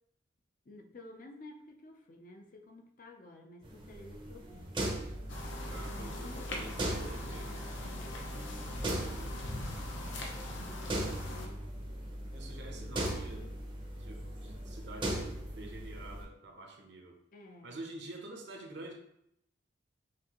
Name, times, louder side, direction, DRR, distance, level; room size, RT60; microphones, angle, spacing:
voice 1, 0.7-5.0 5.9-8.3 10.6-11.6 12.8-13.5 17.3-17.8, left 2 dB, 45° left, 3 dB, 0.5 m, -52 dB
sound 1, 3.6-16.2, right 1 dB, 25° right, 0.6 m, -39 dB
sound 2, 5.3-11.5, left 2 dB, 80° left, 0.8 m, -43 dB
voice 2, 5.7-7.5 9.0-9.4 12.3-13.5 13.9-17.2 17.6-18.9, right 2 dB, 65° right, 2 dB, 0.8 m, -48 dB
5.9 x 2.6 x 2.9 m, 0.77 s
head